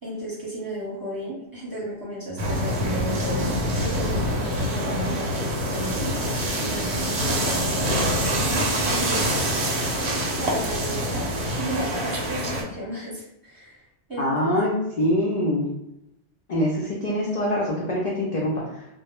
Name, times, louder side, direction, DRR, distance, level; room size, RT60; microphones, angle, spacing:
voice 1, 0.0-9.3 10.4-11.2 11.6-13.8 14.1-14.5 15.0-15.2, right 1 dB, 20° right, -8 dB, 0.7 m, -34 dB
sound 1, 2.4-12.6, equal, 75° right, 0.8 m, -25 dB
voice 2, 14.2-15.7 16.5-18.9, left 1 dB, 60° left, -4 dB, 0.4 m, -24 dB
2.0 x 2.0 x 3.0 m, 0.84 s
omnidirectional pair, 1.2 m